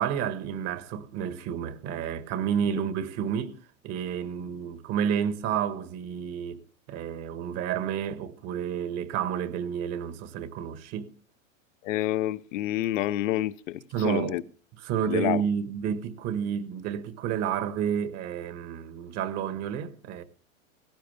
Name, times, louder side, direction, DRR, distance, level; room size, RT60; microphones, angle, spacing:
voice 1, 0.0-3.6 3.8-6.6 6.9-11.1 13.9-14.4 14.8-20.2, right 8 dB, 40° right, 1.6 m, -30 dB
voice 2, 11.8-14.4 15.0-15.4, left 14 dB, 70° left, 1.0 m, -28 dB
18.0 x 16.5 x 3.5 m
hypercardioid pair, 130°, 40 cm